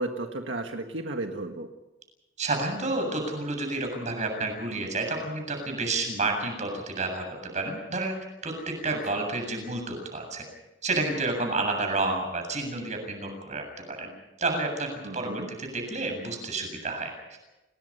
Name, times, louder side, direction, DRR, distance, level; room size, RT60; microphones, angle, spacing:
voice 1, 0.0-1.7 8.9-9.0 15.0-15.5, right 2 dB, 85° right, 4 dB, 1.7 m, -33 dB
voice 2, 2.4-7.2 7.5-8.1 8.4-10.4 10.8-14.1 14.4-17.4, right 2 dB, 40° right, 4 dB, 7.6 m, -30 dB
28.5 x 19.5 x 5.6 m, 1.0 s
head